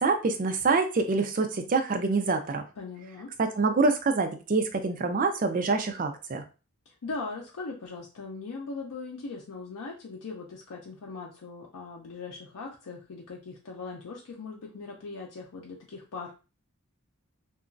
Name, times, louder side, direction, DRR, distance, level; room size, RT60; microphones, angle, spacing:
voice 1, 0.0-2.6 3.4-6.4, right 4 dB, 35° right, 6 dB, 0.4 m, -26 dB
voice 2, 2.8-3.3 7.0-16.3, left 4 dB, 80° left, -1 dB, 0.5 m, -40 dB
2.9 x 2.3 x 2.5 m, 0.32 s
head